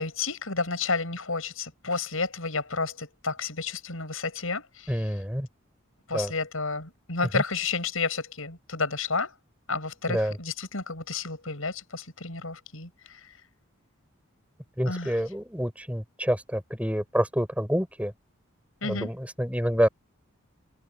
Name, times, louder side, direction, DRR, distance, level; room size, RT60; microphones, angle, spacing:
voice 1, 0.0-4.9 6.1-9.3 9.7-13.2 14.8-15.1 18.8-19.1, left 4 dB, 80° left, 6.2 m, -31 dB
voice 2, 4.9-5.5 6.1-6.3 7.3-7.4 10.1-10.4 14.8-18.1 18.8-19.9, equal, 5° right, 7.3 m, -27 dB
head